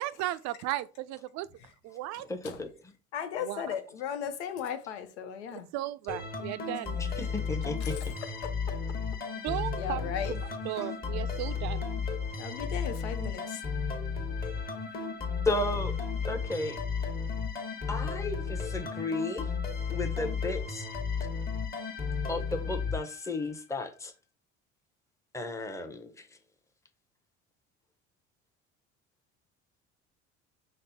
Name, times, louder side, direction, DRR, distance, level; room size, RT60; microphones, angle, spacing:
voice 1, 0.0-1.5 1.8-2.3 3.4-3.6 5.5-7.0 9.3-11.9, right 15 dB, 55° right, 0.4 m, -36 dB
voice 2, 2.3-2.9 7.0-8.0 15.4-15.9 16.3-16.8 17.9-19.5 19.9-20.9 22.3-24.1 25.3-26.3, left 2 dB, 10° left, 0.7 m, -34 dB
voice 3, 3.1-5.7 7.8-8.1 8.4-8.5 9.8-10.3 12.4-13.6, left 8 dB, 85° left, 0.7 m, -36 dB
sound 1, 6.1-23.6, left 5 dB, 30° left, 1.2 m, -34 dB
5.3 x 2.0 x 4.0 m
hypercardioid pair, 75°, 33 cm